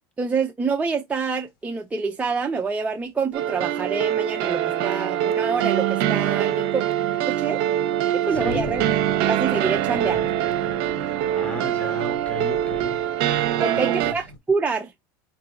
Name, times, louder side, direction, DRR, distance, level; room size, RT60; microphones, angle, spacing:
voice 1, 0.2-6.8 7.2-7.6 8.1-8.9 9.2-10.2 13.6-14.9, right 4 dB, 15° right, 0.6 m, -26 dB
sound 1, 1.4-1.5 4.0-4.1 4.5-4.6 6.2-14.4, left 2 dB, 85° left, 1.8 m, -42 dB
sound 2, 3.3-14.1, right 11 dB, 65° right, 0.8 m, -24 dB
voice 2, 8.3-8.7 10.9-13.1 13.4-14.2, left 2 dB, 10° left, 1.3 m, -35 dB
3.7 x 2.7 x 3.9 m
supercardioid pair, 120°, 11 cm